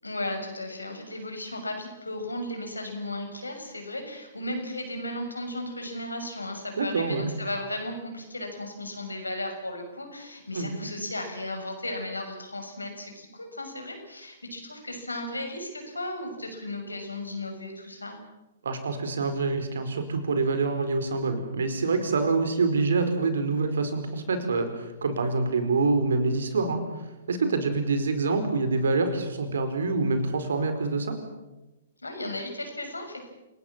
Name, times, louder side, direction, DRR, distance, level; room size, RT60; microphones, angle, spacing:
voice 1, 0.0-18.2 32.0-33.3, left 1 dB, 85° left, 4 dB, 6.6 m, -35 dB
voice 2, 6.8-7.3 10.5-10.7 18.6-26.8 27.3-31.1, right 3 dB, 70° right, 8 dB, 4.6 m, -26 dB
28.5 x 19.5 x 7.5 m, 1.0 s
figure-of-eight pair, 115°, 0 cm